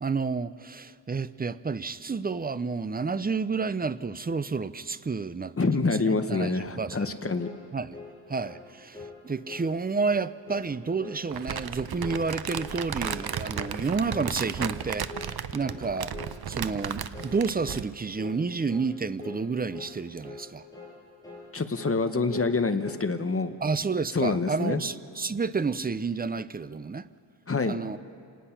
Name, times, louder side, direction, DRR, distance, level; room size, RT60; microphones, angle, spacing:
voice 1, 0.0-7.3 7.7-8.0 8.3-16.1 16.5-20.7 23.6-27.1 27.6-28.0, right 4 dB, 20° right, 0.4 m, -30 dB
voice 2, 5.6-7.5 21.5-23.5 24.1-24.8 27.5-27.8, left 3 dB, 30° left, 0.9 m, -26 dB
sound 1, 6.9-7.1 7.4-7.6 7.9-8.1 8.4-8.6 8.9-9.2 9.4-9.7 10.0-10.2 10.5-10.7 11.0-11.2 11.5-11.7 12.0-12.2 12.5-12.7 13.0-13.3 13.5-13.8 14.1-14.3 14.6-14.8 15.1-15.3 15.6-15.8 16.1-16.3 16.6-16.8 17.1-17.4 17.6-17.9 18.2-18.4 18.7-18.9 19.2-19.4 19.7-19.9 20.2-20.5 20.7-20.9 21.2-21.5 21.7-22.0 22.3-23.0, left 3 dB, 10° left, 6.8 m, -43 dB
Crumpling crinkling, 11.3-17.9, right 8 dB, 55° right, 0.7 m, -34 dB
27.0 x 18.5 x 5.8 m
wide cardioid pair, 140°, 45 cm